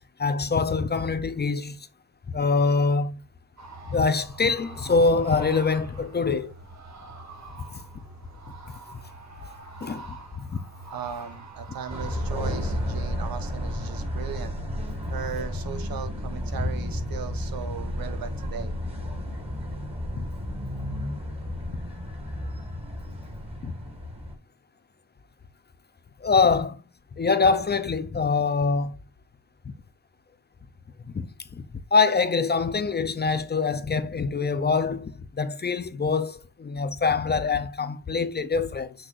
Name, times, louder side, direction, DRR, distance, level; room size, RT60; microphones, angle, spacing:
voice 1, 0.2-1.9 2.3-3.2 3.9-6.5 9.8-10.1 10.5-10.6 20.2-20.3 23.6-23.7 26.2-26.8 27.2-29.0 31.1-31.3 31.9-38.9, left 4 dB, 30° left, 0.6 m, -24 dB
sound 1, 3.6-13.0, right 2 dB, 50° right, 2.0 m, -44 dB
voice 2, 10.8-14.5 15.1-18.8, right 7 dB, 70° right, 1.2 m, -37 dB
sound 2, 11.9-24.3, left 1 dB, 15° right, 2.2 m, -32 dB
6.3 x 6.2 x 2.5 m
wide cardioid pair, 130°, 36 cm